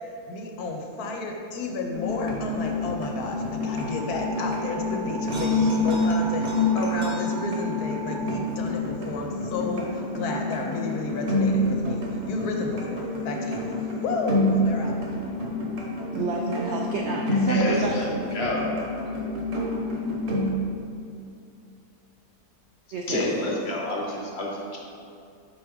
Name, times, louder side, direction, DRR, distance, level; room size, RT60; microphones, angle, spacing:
voice 1, 0.3-15.0, left 3 dB, 70° left, 1 dB, 1.2 m, -32 dB
sound 1, 1.9-20.5, left 1 dB, 50° right, 1.1 m, -27 dB
sound 2, 3.7-8.4, right 4 dB, 30° left, 0.4 m, -39 dB
voice 2, 16.1-18.0 22.9-23.4, right 3 dB, 80° right, 0 dB, 0.6 m, -30 dB
voice 3, 17.5-18.8 23.1-24.8, left 1 dB, 50° left, -2 dB, 1.0 m, -28 dB
4.8 x 4.6 x 4.9 m, 2.5 s
omnidirectional pair, 1.7 m